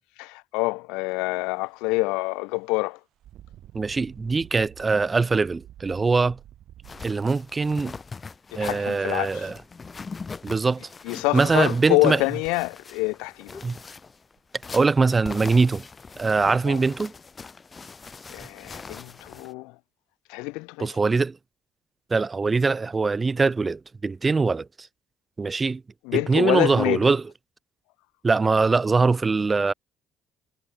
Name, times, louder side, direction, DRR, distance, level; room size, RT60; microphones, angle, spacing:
voice 1, 0.2-3.0 8.5-9.5 11.0-13.6 16.7-16.8 18.3-19.8 20.3-21.0 26.0-27.1, left 26 dB, 65° left, 0.4 m, -26 dB
Engine, 1.1-1.3 1.8-1.9 3.2-8.9 9.8-9.9 10.4-11.1 12.9-13.0 13.4-13.5 14.0-14.1 14.4-14.9 15.4-15.6 16.2-16.6, right 12 dB, 55° right, 6.4 m, -50 dB
voice 2, 3.7-6.4 7.0-7.9 8.5-9.5 10.4-10.9 11.3-12.2 13.6-13.8 14.7-15.8 16.2-17.1 20.8-21.4 22.1-24.9 25.4-25.8 26.1-27.2 28.2-29.7, right 4 dB, 25° right, 0.3 m, -22 dB
sound 1, 6.8-19.5, left 4 dB, 30° left, 1.0 m, -42 dB
figure-of-eight pair, 50°, 0 cm